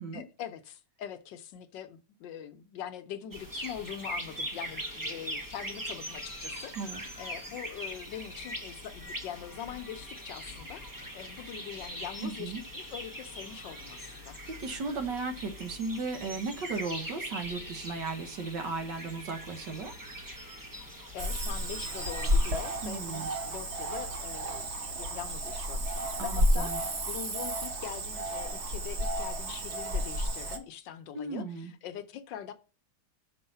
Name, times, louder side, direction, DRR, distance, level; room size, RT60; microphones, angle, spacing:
voice 1, 0.1-14.4 21.1-32.5, left 10 dB, 75° left, 1.3 m, -43 dB
sound 1, 3.3-22.8, equal, 20° right, 0.5 m, -41 dB
voice 2, 12.2-12.6 14.6-19.9 22.8-23.3 26.2-26.8 31.1-31.7, right 4 dB, 70° right, 1.7 m, -36 dB
Cricket / Frog, 21.2-30.6, equal, 45° right, 1.1 m, -31 dB
6.3 x 4.5 x 5.5 m
omnidirectional pair, 2.0 m